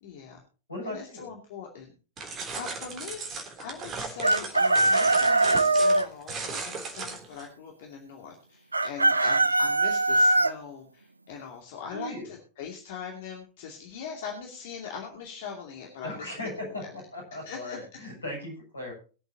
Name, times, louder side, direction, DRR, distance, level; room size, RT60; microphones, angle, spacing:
voice 1, 0.0-0.4 0.8-16.9 17.3-17.8, left 6 dB, 55° left, 1 dB, 2.6 m, -41 dB
voice 2, 0.7-1.3 11.9-12.3 16.0-18.9, left 1 dB, 80° left, -1 dB, 7.6 m, -37 dB
sound 1, 2.2-7.5, right 4 dB, 30° right, 3.4 m, -37 dB
Chicken rooster, 4.2-6.1 8.7-10.5, right 2 dB, 80° right, 0.5 m, -21 dB
23.5 x 8.1 x 2.9 m, 0.36 s
figure-of-eight pair, 90°, 0 cm